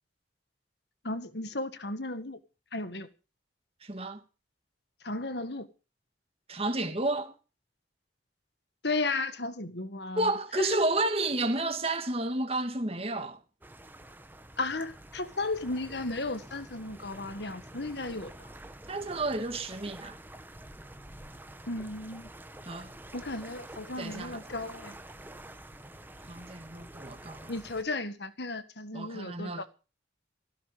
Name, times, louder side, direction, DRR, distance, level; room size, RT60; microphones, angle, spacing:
voice 1, 1.0-2.4 2.7-3.1 5.0-5.7 8.8-10.3 10.6-10.8 14.6-18.5 21.7-22.3 23.1-25.0 27.5-29.6, left 2 dB, 65° left, 1.8 m, -34 dB
voice 2, 3.8-4.2 6.5-7.3 10.2-13.4 18.9-20.2 22.7-22.9 24.0-24.4 26.3-27.5 28.9-29.6, right 2 dB, 30° right, 2.3 m, -31 dB
sound 1, 13.6-27.8, right 1 dB, 10° right, 1.2 m, -48 dB
16.0 x 16.0 x 5.0 m
head